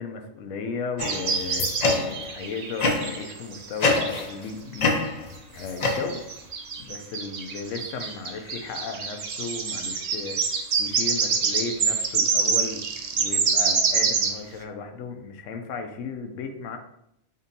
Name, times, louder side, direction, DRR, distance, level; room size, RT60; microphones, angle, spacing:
voice 1, 0.0-5.0 5.6-6.2 6.8-12.8 13.1-16.8, left 4 dB, 85° left, 5 dB, 1.0 m, -35 dB
sound 1, 1.0-2.3 2.8-3.3 3.8-4.5 4.8-6.5, left 3 dB, 50° left, 0.5 m, -26 dB
sound 2, 1.0-4.3 4.7-4.8 5.6-14.4, right 5 dB, 60° right, 0.4 m, -26 dB
5.1 x 2.6 x 2.7 m, 0.77 s
omnidirectional pair, 1.3 m